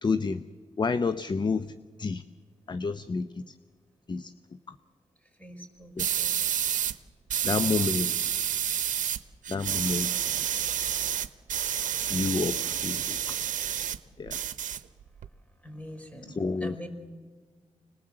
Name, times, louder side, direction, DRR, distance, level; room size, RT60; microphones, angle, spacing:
voice 1, 0.0-0.4 0.8-2.2 2.7-3.5 4.1-4.3 4.7-4.8 6.0-6.1 7.4-8.3 9.5-10.4 12.1-13.3 14.2-14.4 16.4-16.7, left 4 dB, 35° left, 13 dB, 0.7 m, -30 dB
voice 2, 5.4-6.4 7.7-8.0 13.0-13.2 15.6-16.3 16.6-16.9, equal, 10° left, 6 dB, 5.2 m, -44 dB
sound 1, 6.0-6.9 7.3-9.2 9.4-14.0 14.3-15.3, right 9 dB, 85° right, 0.8 m, -29 dB
26.0 x 20.0 x 7.8 m, 1.6 s
cardioid pair, 80°, 13 cm